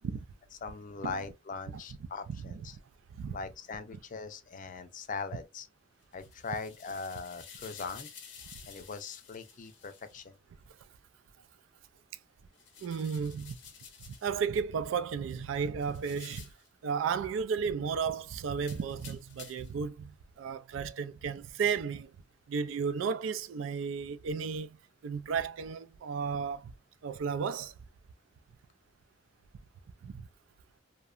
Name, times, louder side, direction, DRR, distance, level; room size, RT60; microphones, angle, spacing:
voice 1, 0.6-2.8 3.3-5.7 6.1-8.1 8.7-10.4, left 4 dB, 45° left, 0.4 m, -40 dB
voice 2, 2.3-2.6 3.2-3.4 12.8-13.6 14.1-16.5 16.8-22.1 22.5-24.8 25.0-26.7 27.0-27.7 30.0-30.3, right 6 dB, 90° right, 0.3 m, -33 dB
sound 1, 6.0-10.2 12.5-14.4 15.8-16.7 18.6-19.8, left 7 dB, 65° left, 0.8 m, -52 dB
2.8 x 2.1 x 2.3 m
head